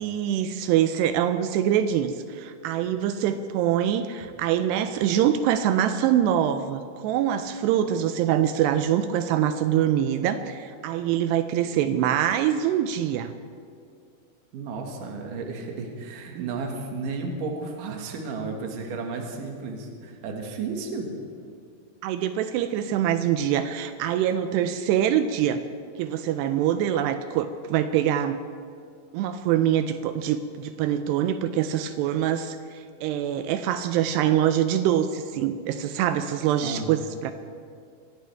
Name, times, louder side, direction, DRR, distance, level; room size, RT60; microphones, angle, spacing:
voice 1, 0.0-13.3 16.4-16.5 22.0-25.6 26.0-28.4 29.1-37.3, right 10 dB, 80° right, 10 dB, 2.6 m, -24 dB
voice 2, 14.5-21.1 36.6-37.0, right 4 dB, 60° right, 2 dB, 2.8 m, -33 dB
23.5 x 15.0 x 3.4 m, 2.2 s
omnidirectional pair, 5.0 m